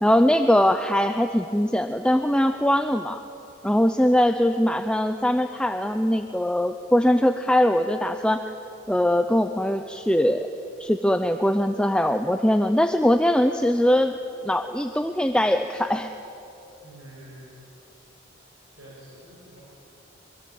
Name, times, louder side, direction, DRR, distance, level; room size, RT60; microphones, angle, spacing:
voice 1, 0.0-3.2 3.6-8.4 8.9-10.5 10.8-14.1 14.4-16.1, left 1 dB, 5° left, 7 dB, 0.6 m, -21 dB
voice 2, 16.8-17.5 18.7-19.6, right 1 dB, 85° right, -5 dB, 6.3 m, -47 dB
24.0 x 22.5 x 8.7 m, 3.0 s
head